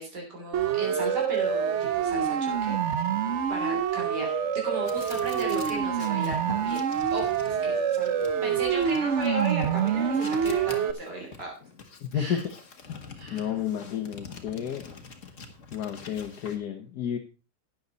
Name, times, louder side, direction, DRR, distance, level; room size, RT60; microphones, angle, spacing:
voice 1, 0.0-3.1 3.5-6.8 7.1-8.1 8.4-11.5 12.1-12.4 13.2-13.5, right 2 dB, 70° right, 0 dB, 4.0 m, -35 dB
Siren, 0.5-10.9, right 8 dB, 50° right, 0.9 m, -26 dB
sound 1, 4.8-16.6, left 5 dB, 45° left, 1.8 m, -46 dB
voice 2, 12.0-12.4 13.3-14.8 15.7-17.2, left 9 dB, 65° left, 6 dB, 1.5 m, -31 dB
12.0 x 9.5 x 4.0 m, 0.33 s
omnidirectional pair, 1.9 m